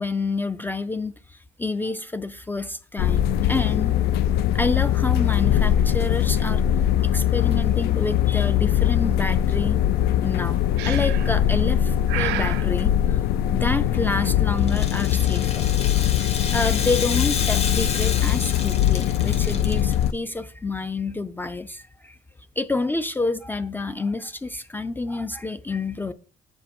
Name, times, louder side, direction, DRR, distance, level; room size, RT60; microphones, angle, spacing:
voice 1, 0.0-4.0 4.5-6.6 7.0-9.8 10.2-13.2 13.5-15.7 16.5-22.2 22.6-26.1, left 3 dB, 10° left, 0.4 m, -28 dB
sound 1, 3.0-20.1, left 11 dB, 75° left, 0.4 m, -21 dB
Breathing, 10.8-11.4 12.1-12.7, right 16 dB, 80° right, 0.4 m, -30 dB
Rattle (instrument), 14.6-20.1, left 5 dB, 40° left, 1.2 m, -31 dB
7.4 x 7.1 x 2.9 m
cardioid pair, 110°, 17 cm